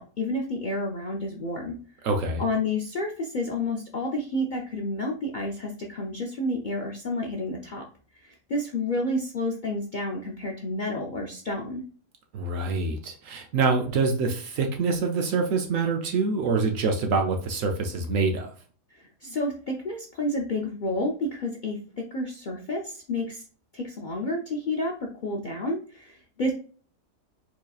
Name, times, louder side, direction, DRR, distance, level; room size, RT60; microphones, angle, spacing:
voice 1, 0.0-1.8 2.4-7.8 8.1-11.8 18.9-21.8 22.1-23.4 23.7-26.5, left 1 dB, 70° left, 0 dB, 0.4 m, -30 dB
voice 2, 2.0-2.4 12.3-18.5, right 4 dB, 70° right, 4 dB, 0.9 m, -25 dB
4.6 x 2.8 x 2.3 m, 0.40 s
omnidirectional pair, 1.5 m